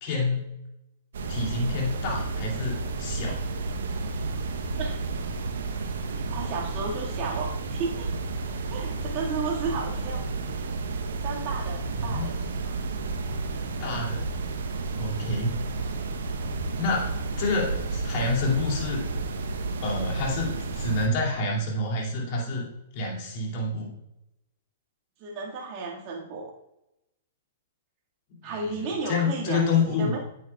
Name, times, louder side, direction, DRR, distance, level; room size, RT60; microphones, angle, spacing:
voice 1, 0.0-0.5 1.3-3.4 12.0-12.4 13.8-14.3 15.0-15.6 16.8-17.1 17.4-19.1 19.8-22.7 22.9-23.9 28.3-30.2, left 3 dB, 50° left, -1 dB, 2.6 m, -28 dB
sound 1, 1.1-21.1, right 3 dB, 75° right, 0.9 m, -31 dB
voice 2, 6.3-8.1 8.7-10.2 11.2-12.3 25.2-26.5 28.4-30.2, right 4 dB, 40° right, -2 dB, 1.9 m, -33 dB
9.0 x 8.1 x 2.3 m, 0.89 s
hypercardioid pair, 120°, 0 cm